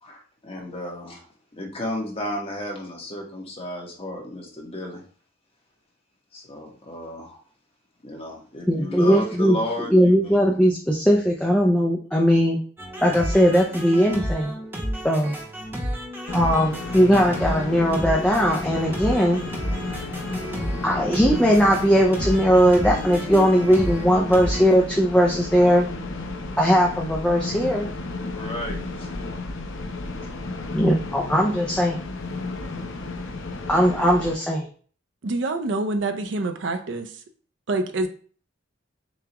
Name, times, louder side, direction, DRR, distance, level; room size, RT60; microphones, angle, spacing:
voice 1, 0.0-1.3 1.5-5.0 6.3-7.4 8.0-10.4 28.2-29.2, left 1 dB, 30° left, -1 dB, 1.0 m, -33 dB
voice 2, 8.7-9.6 9.9-12.6 13.0-14.5 15.0-15.4 16.3-19.4 20.8-25.9 26.6-27.9 30.7-32.0 33.7-34.7, equal, 5° left, -2 dB, 0.4 m, -19 dB
sound 1, 12.8-24.6, equal, 10° right, 0.9 m, -31 dB
sound 2, 16.3-34.3, left 3 dB, 70° left, 0.6 m, -33 dB
voice 3, 35.2-37.2 37.7-38.1, right 2 dB, 60° right, 7 dB, 0.5 m, -26 dB
6.9 x 2.3 x 2.9 m, 0.43 s
head